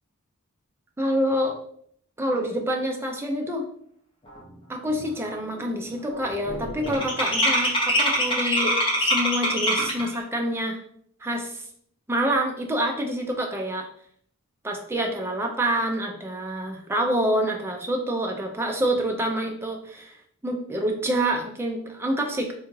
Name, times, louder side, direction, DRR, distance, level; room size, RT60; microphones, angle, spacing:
voice 1, 1.0-1.6 2.2-3.7 4.7-10.8 11.2-11.6 12.1-13.9 14.6-20.2 20.4-22.5, right 1 dB, 10° right, 2 dB, 0.4 m, -27 dB
sound 1, 4.5-4.6 4.9-5.3 5.5-10.1, equal, 25° left, 0.6 m, -24 dB
3.5 x 2.3 x 3.0 m, 0.64 s
head